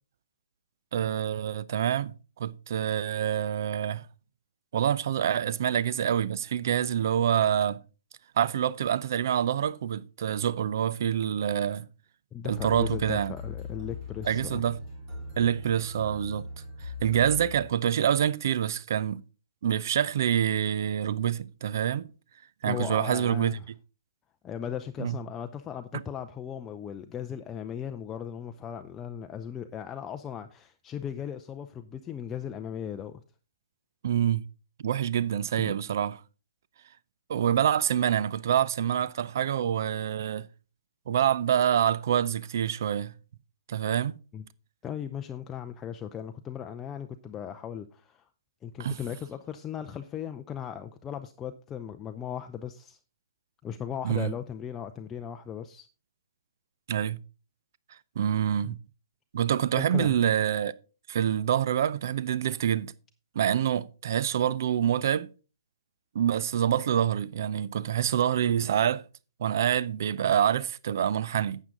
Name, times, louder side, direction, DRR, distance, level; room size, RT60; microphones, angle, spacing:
voice 1, 0.9-4.1 4.7-7.8 8.4-11.9 12.4-13.3 14.3-14.8 15.4-16.5 17.0-19.2 19.6-22.1 22.6-23.6 25.0-25.2 25.9-26.0 34.0-34.4 34.8-36.2 37.3-40.5 41.1-43.1 43.7-44.1 48.8-49.0 54.0-54.3 56.9-57.2 58.2-58.8 59.3-60.7 61.1-62.9 63.3-65.3 66.1-69.0 69.4-71.6, right 9 dB, 50° right, 0.5 m, -26 dB
voice 2, 12.3-14.6 22.6-23.7 24.4-33.2 35.6-35.7 44.3-44.4 44.8-48.3 48.6-53.0 53.6-55.9 58.6-58.8 59.8-60.2, left 8 dB, 15° left, 0.5 m, -37 dB
sound 1, 12.5-18.2, left 3 dB, 35° right, 5.3 m, -40 dB
12.0 x 8.3 x 3.8 m
figure-of-eight pair, 130°, 2 cm